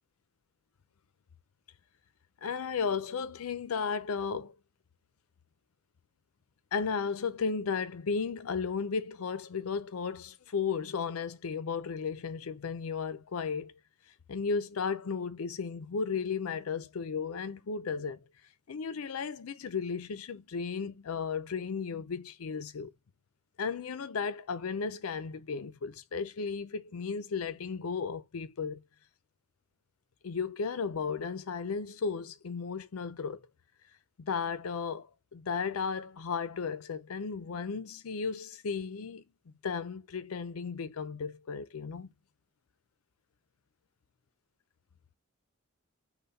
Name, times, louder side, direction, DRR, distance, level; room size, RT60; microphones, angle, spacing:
voice 1, 2.4-4.5 6.7-13.7 14.3-18.2 18.7-22.9 23.6-28.8 30.2-33.4 34.2-39.2 39.6-42.1, left 5 dB, 85° left, 0.5 m, -34 dB
5.5 x 2.2 x 4.0 m
head